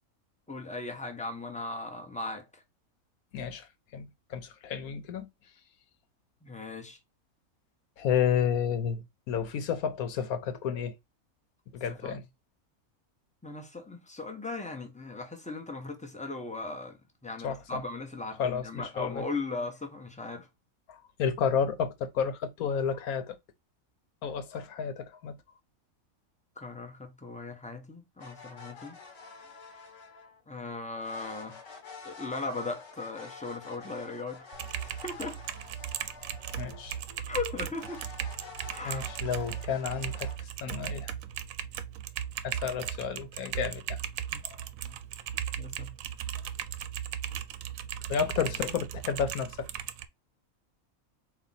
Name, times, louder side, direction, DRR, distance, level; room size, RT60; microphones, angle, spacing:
voice 1, 0.5-2.6 6.4-7.0 11.9-12.2 13.4-20.5 26.6-29.0 30.5-31.6 32.0-34.5 35.0-35.4 37.3-38.0 38.7-39.0 44.3-44.4 44.8-44.9 45.6-45.9, left 3 dB, 10° left, 0.5 m, -38 dB
voice 2, 3.3-5.3 8.0-11.0 11.7-12.2 17.4-17.8 18.4-19.2 20.9-23.4 24.2-25.4 36.5-37.2 38.8-41.1 42.4-44.0 44.4-44.6 48.1-49.7, left 7 dB, 85° left, 1.2 m, -31 dB
sound 1, 28.2-30.4 31.0-37.2 37.7-40.4, left 5 dB, 60° left, 1.3 m, -48 dB
Typing, 34.5-50.1, right 10 dB, 75° right, 0.9 m, -37 dB
4.2 x 2.6 x 4.0 m
omnidirectional pair, 1.5 m